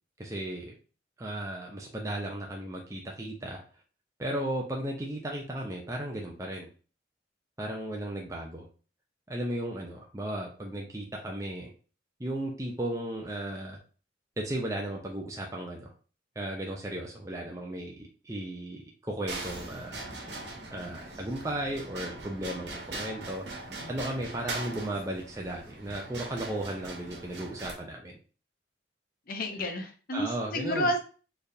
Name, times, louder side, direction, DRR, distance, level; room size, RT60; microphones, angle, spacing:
voice 1, 0.2-0.7 1.2-3.6 4.2-6.7 7.6-8.7 9.3-11.7 12.2-13.8 14.4-15.9 16.4-20.1 20.7-23.4 23.9-28.2 30.1-30.9, right 1 dB, 15° right, -1 dB, 0.6 m, -35 dB
sound 1, 19.3-27.7, right 2 dB, 70° right, 1.3 m, -41 dB
voice 2, 29.3-31.0, equal, 50° left, 4 dB, 0.7 m, -31 dB
4.3 x 3.4 x 2.7 m, 0.38 s
head